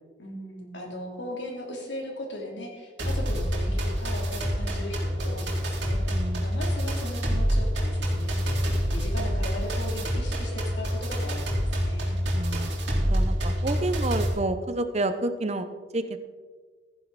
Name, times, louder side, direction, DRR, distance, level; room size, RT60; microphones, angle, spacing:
voice 1, 0.2-12.2, left 1 dB, 80° left, 0 dB, 3.1 m, -38 dB
sound 1, 3.0-14.3, equal, 85° right, 3.5 m, -27 dB
voice 2, 6.1-6.5 12.3-12.7 13.0-15.6 15.9-16.2, right 2 dB, 35° right, 10 dB, 0.8 m, -29 dB
15.0 x 10.5 x 4.1 m, 1.4 s
head